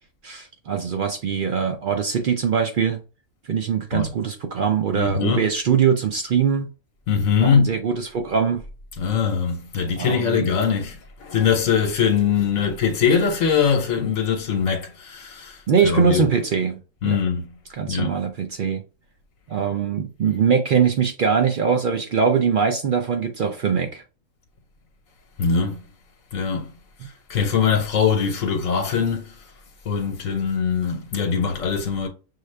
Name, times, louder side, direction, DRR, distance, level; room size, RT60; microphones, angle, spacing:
voice 1, 0.2-3.0 3.5-6.7 7.4-8.6 10.0-10.5 15.7-17.2 17.7-18.8 19.5-24.0, right 6 dB, 70° right, 0.5 m, -22 dB
voice 2, 5.0-5.5 7.1-7.7 9.0-16.2 17.0-17.5 17.9-18.1 25.4-25.8 26.3-26.7 27.0-29.4 29.8-32.1, left 6 dB, 75° left, 1.2 m, -22 dB
6.4 x 2.3 x 3.2 m
omnidirectional pair, 1.4 m